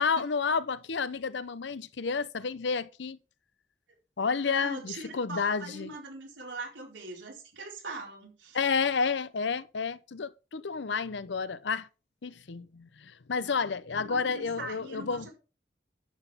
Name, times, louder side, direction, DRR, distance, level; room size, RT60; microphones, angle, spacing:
voice 1, 0.0-3.2 4.2-5.9 8.5-11.9 12.2-15.3, left 5 dB, 75° left, 0.6 m, -30 dB
voice 2, 4.4-8.6 14.0-15.3, right 3 dB, 85° right, 4.2 m, -41 dB
11.0 x 8.0 x 3.6 m
head